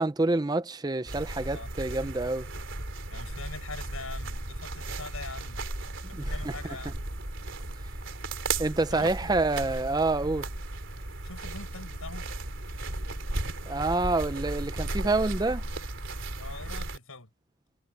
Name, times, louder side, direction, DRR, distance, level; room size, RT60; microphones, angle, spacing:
voice 1, 0.0-2.5 6.1-6.5 8.6-10.5 13.7-15.7, right 2 dB, 20° right, 0.5 m, -27 dB
sound 1, 1.1-17.0, right 2 dB, 65° right, 3.5 m, -35 dB
voice 2, 3.1-5.6 6.1-7.1 8.9-9.4 11.2-12.3 16.4-17.3, left 3 dB, 85° left, 6.7 m, -43 dB
head